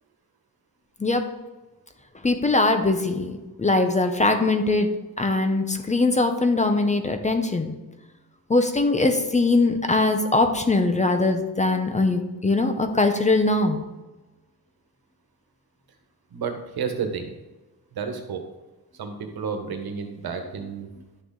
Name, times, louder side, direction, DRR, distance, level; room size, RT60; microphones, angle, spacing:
voice 1, 2.2-7.7 8.5-13.8, left 2 dB, 20° left, 6 dB, 0.7 m, -21 dB
voice 2, 16.3-17.4 17.9-18.4 19.0-20.9, right 6 dB, 75° right, 6 dB, 1.4 m, -31 dB
11.0 x 6.6 x 3.8 m, 1.1 s
wide cardioid pair, 175°, 37 cm